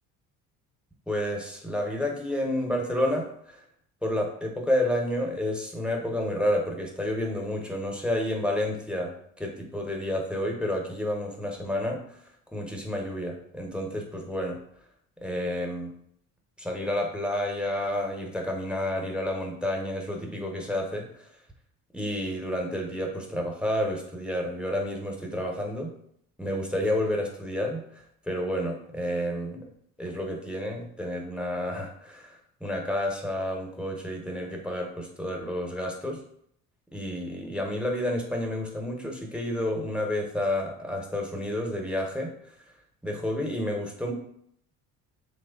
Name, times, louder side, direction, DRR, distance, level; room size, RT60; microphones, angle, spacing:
voice 1, 1.1-3.6 4.0-12.2 12.5-14.6 15.2-15.9 16.6-21.3 21.9-25.9 26.4-29.7 30.0-36.2 36.9-42.6 43.0-44.1, left 1 dB, 5° right, 1 dB, 0.6 m, -30 dB
3.0 x 2.1 x 2.2 m, 0.68 s
hypercardioid pair, 60°, 39 cm